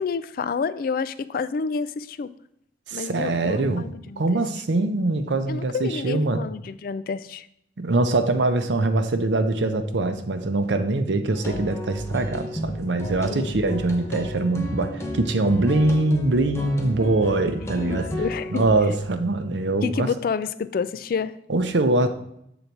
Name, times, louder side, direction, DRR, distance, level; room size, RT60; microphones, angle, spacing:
voice 1, 0.0-2.3 2.9-4.4 5.5-7.5 13.3-13.5 17.7-18.6 19.8-21.4, left 5 dB, 55° left, 15 dB, 0.3 m, -29 dB
voice 2, 2.9-3.9 4.2-6.5 7.8-18.1 18.5-20.1 21.5-22.1, right 2 dB, 85° right, 8 dB, 0.7 m, -23 dB
sound 1, 11.3-18.8, equal, 15° left, 0.8 m, -32 dB
6.9 x 4.0 x 4.5 m, 0.75 s
head